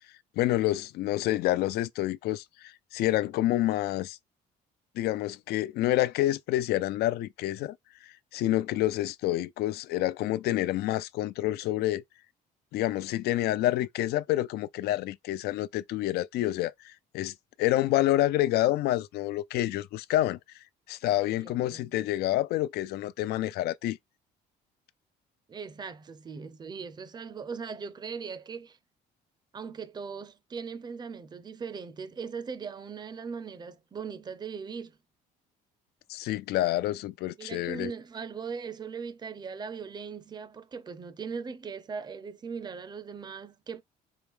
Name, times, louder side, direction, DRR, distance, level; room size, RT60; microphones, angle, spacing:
voice 1, 0.4-4.2 5.0-12.0 12.7-20.4 20.9-24.0 36.1-37.9, left 15 dB, 70° left, 0.4 m, -28 dB
voice 2, 21.4-21.9 25.5-28.8 29.5-34.9 37.4-43.8, right 5 dB, 25° right, 0.5 m, -39 dB
4.7 x 2.2 x 3.5 m
cardioid pair, 110°, 17 cm